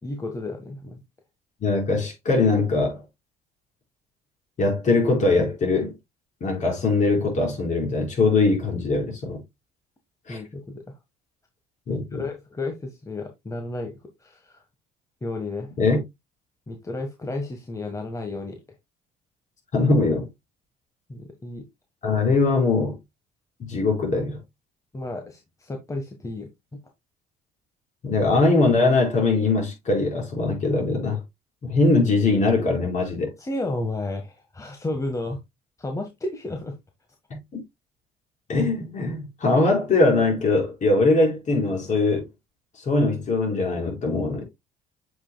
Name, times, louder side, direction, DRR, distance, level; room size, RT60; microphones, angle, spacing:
voice 1, 0.0-1.0 10.3-10.8 11.9-14.6 15.2-15.7 16.7-18.6 21.1-21.7 24.9-26.5 33.4-35.4 35.8-36.8, left 2 dB, 20° left, 1.4 m, -32 dB
voice 2, 1.6-3.0 4.6-5.9 6.4-9.4 10.3-10.4 11.9-12.2 15.8-16.0 19.7-20.3 22.0-23.0 23.6-24.4 28.0-31.2 31.6-33.3 37.3-37.4 38.5-42.3 42.8-44.4, left 3 dB, 45° left, 4.6 m, -21 dB
7.9 x 5.9 x 2.2 m
cardioid pair, 90°, 17 cm